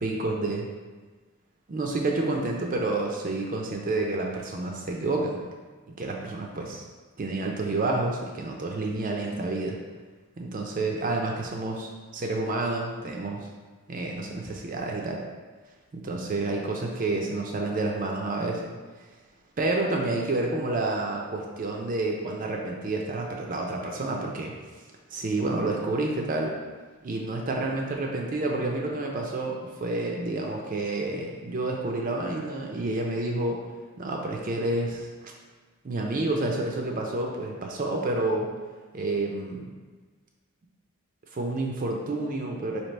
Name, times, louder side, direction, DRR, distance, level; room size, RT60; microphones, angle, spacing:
voice 1, 0.0-0.6 1.7-5.4 5.9-6.8 7.2-9.8 10.4-13.5 13.9-15.2 15.9-18.6 19.6-24.5 25.1-26.5 27.0-33.6 34.0-35.3 35.8-38.5 38.9-39.7 41.3-42.8, right 2 dB, 40° right, 1 dB, 0.4 m, -29 dB
3.2 x 2.8 x 4.2 m, 1.3 s
head